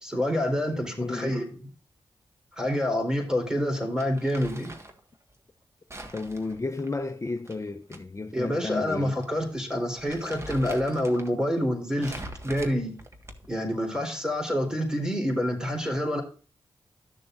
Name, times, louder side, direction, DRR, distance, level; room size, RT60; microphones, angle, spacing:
voice 1, 0.0-1.5 2.6-4.8 8.3-12.9 13.5-16.2, equal, 5° right, 3.8 m, -27 dB
voice 2, 0.7-1.4 6.1-9.2, left 3 dB, 30° left, 0.7 m, -33 dB
Crumpling crinkling, 4.0-5.0 5.9-8.0 8.3-8.4 9.2-9.4 9.7-11.3 12.0-13.6, right 1 dB, 30° right, 1.5 m, -42 dB
13.5 x 6.6 x 2.6 m
cardioid pair, 55°, 10 cm